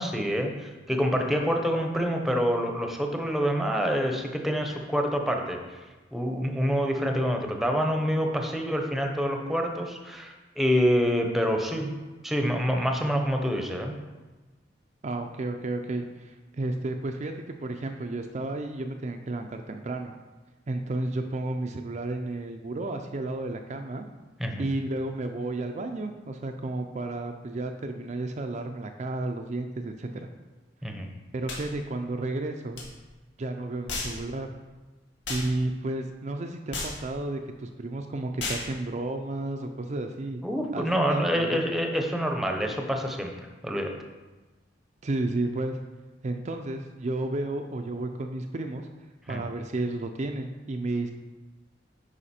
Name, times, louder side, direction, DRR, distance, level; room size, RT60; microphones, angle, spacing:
voice 1, 0.0-5.6 6.1-11.9 12.2-13.9 24.4-24.7 30.8-31.1 40.4-43.9 49.3-49.4, equal, ahead, 3 dB, 0.8 m, -27 dB
voice 2, 15.0-20.1 20.7-24.1 24.6-30.3 31.3-32.8 33.4-34.5 35.3-40.4 40.7-41.6 45.0-45.8 46.2-48.9 49.3-51.1, right 2 dB, 40° right, 4 dB, 0.5 m, -32 dB
sound 1, 31.5-31.7 32.7-32.9 33.9-34.2 35.2-35.5 36.7-37.0 38.4-38.7, left 3 dB, 85° left, 1.9 m, -33 dB
9.8 x 5.0 x 4.3 m, 1.2 s
head